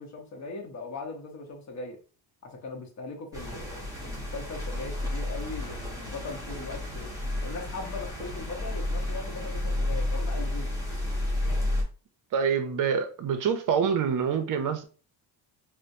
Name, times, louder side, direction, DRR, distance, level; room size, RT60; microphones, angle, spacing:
voice 1, 0.0-2.0 2.4-7.1 7.4-10.7, left 3 dB, 35° left, 1.0 m, -39 dB
sound 1, 3.3-11.8, left 1 dB, 5° right, 0.9 m, -31 dB
voice 2, 12.3-14.8, right 6 dB, 40° right, 0.6 m, -26 dB
4.2 x 2.1 x 2.6 m
cardioid pair, 135°, 48 cm